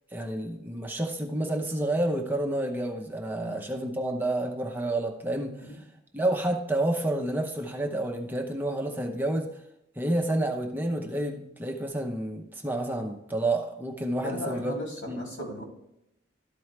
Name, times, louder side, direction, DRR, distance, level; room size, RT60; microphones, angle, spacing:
voice 1, 0.1-5.7 6.1-9.5 10.0-14.7 15.1-15.2, right 1 dB, 10° right, 1 dB, 0.7 m, -29 dB
voice 2, 14.2-15.6, left 1 dB, 75° left, -1 dB, 3.4 m, -37 dB
12.5 x 4.6 x 3.2 m, 0.84 s
head